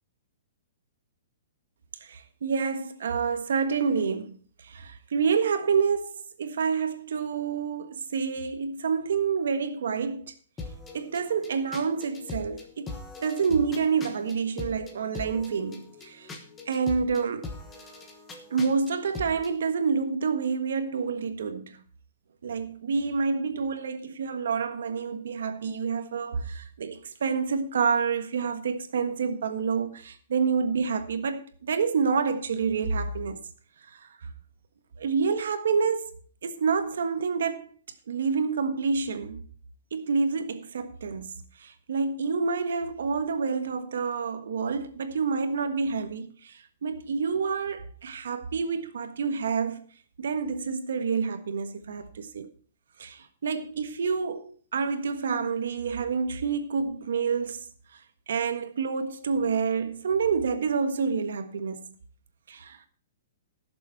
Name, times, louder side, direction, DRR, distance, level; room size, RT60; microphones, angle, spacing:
voice 1, 2.0-4.4 4.6-10.3 10.9-12.9 13.2-16.3 16.7-17.5 18.5-21.8 22.4-33.4 33.9-34.1 35.0-36.1 36.4-37.7 38.1-39.4 39.9-41.3 41.6-49.8 50.2-52.5 53.0-57.6 58.3-61.8 62.5-62.8, right 5 dB, 75° right, 1.4 m, -28 dB
sound 1, 10.6-19.5, left 3 dB, 10° left, 1.2 m, -42 dB
16.5 x 7.1 x 4.2 m
hypercardioid pair, 175°, 0 cm